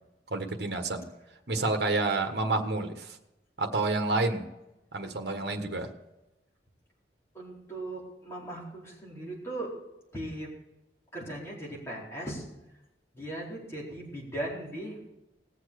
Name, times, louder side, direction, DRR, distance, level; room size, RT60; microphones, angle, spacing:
voice 1, 0.3-1.0 1.5-3.2 3.6-4.4 4.9-5.9, right 3 dB, 65° right, 5 dB, 1.5 m, -29 dB
voice 2, 7.3-9.7 10.1-10.5 11.1-12.4 13.1-15.0, right 1 dB, 15° left, -5 dB, 4.4 m, -38 dB
18.5 x 7.4 x 6.6 m, 0.96 s
head